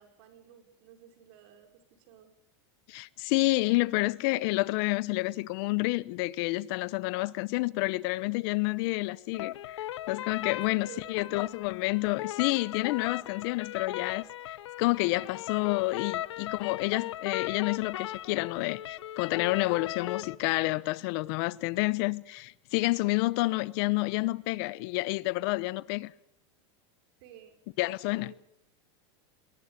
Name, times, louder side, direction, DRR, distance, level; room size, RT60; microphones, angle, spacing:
voice 1, 0.0-2.3 10.5-11.1 27.2-27.6 28.2-28.4, right 10 dB, 60° right, 5.2 m, -53 dB
voice 2, 2.9-26.1 27.8-28.3, left 22 dB, 55° left, 0.8 m, -29 dB
sound 1, 9.3-20.3, left 13 dB, 90° left, 0.8 m, -38 dB
21.5 x 20.0 x 8.2 m
supercardioid pair, 130°, 15 cm